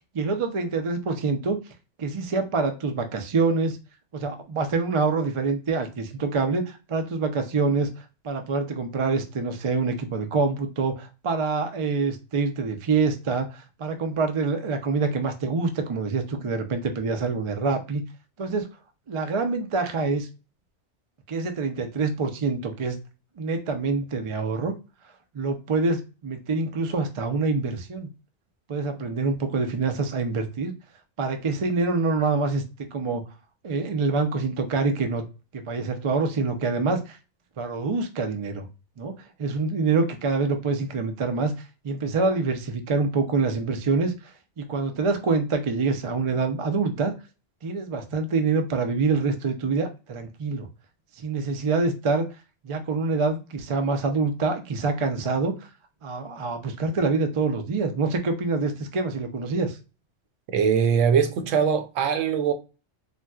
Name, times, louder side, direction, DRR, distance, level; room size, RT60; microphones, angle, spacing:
voice 1, 0.1-1.6 2.0-3.8 4.1-18.0 18.4-18.7 19.1-20.3 21.3-23.0 23.4-24.7 25.3-28.1 28.7-30.7 31.2-32.6 32.9-33.2 33.6-35.2 35.5-37.2 37.6-38.7 39.0-41.5 41.8-47.1 47.6-50.7 51.2-52.3 52.6-55.7 56.0-59.8, right 4 dB, 60° right, 0.3 m, -26 dB
voice 2, 60.5-62.5, right 7 dB, 85° right, 1.0 m, -21 dB
3.9 x 2.2 x 2.2 m
omnidirectional pair, 1.3 m